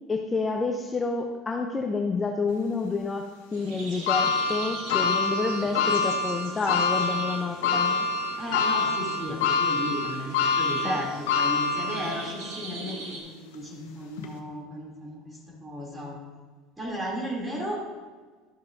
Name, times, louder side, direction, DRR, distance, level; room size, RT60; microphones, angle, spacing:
voice 1, 0.1-8.1 10.8-11.0, left 4 dB, 20° left, 3 dB, 0.6 m, -29 dB
sound 1, 3.5-13.2, right 2 dB, 90° right, 2.4 m, -42 dB
sound 2, 4.1-12.4 12.9-13.0 14.2-14.3, left 4 dB, 90° left, 1.1 m, -26 dB
voice 2, 8.4-16.2 16.8-17.8, equal, 15° right, -3 dB, 2.8 m, -34 dB
12.5 x 6.6 x 2.6 m, 1.4 s
supercardioid pair, 120°, 0 cm